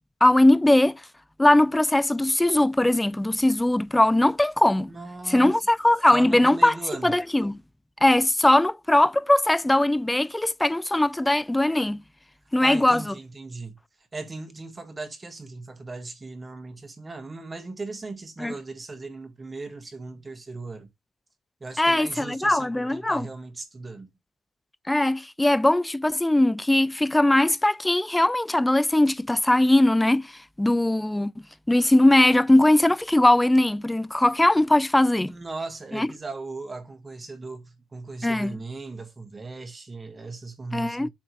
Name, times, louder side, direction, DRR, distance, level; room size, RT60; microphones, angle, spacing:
voice 1, 0.2-1.0 1.4-4.9 5.3-6.7 7.0-7.6 8.0-12.0 12.5-13.0 18.4-18.5 21.8-23.3 24.9-30.2 30.6-31.3 31.7-35.3 35.9-36.1 38.2-38.6 40.7-41.1, left 1 dB, 10° left, 0.3 m, -20 dB
voice 2, 4.8-5.6 6.1-7.2 12.4-20.9 21.6-24.1 35.3-41.1, right 3 dB, 25° right, 1.6 m, -38 dB
7.3 x 3.4 x 4.6 m
cardioid pair, 90°, 0 cm